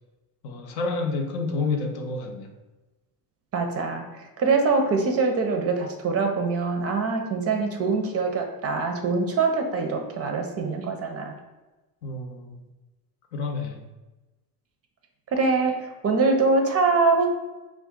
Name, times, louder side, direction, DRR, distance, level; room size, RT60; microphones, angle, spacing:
voice 1, 0.4-2.5 12.0-12.6 13.3-13.8, left 3 dB, 70° left, 4 dB, 0.6 m, -29 dB
voice 2, 3.5-11.4 15.3-17.3, right 4 dB, 30° right, 3 dB, 0.5 m, -24 dB
2.5 x 2.4 x 3.5 m, 1.1 s
hypercardioid pair, 70°, 48 cm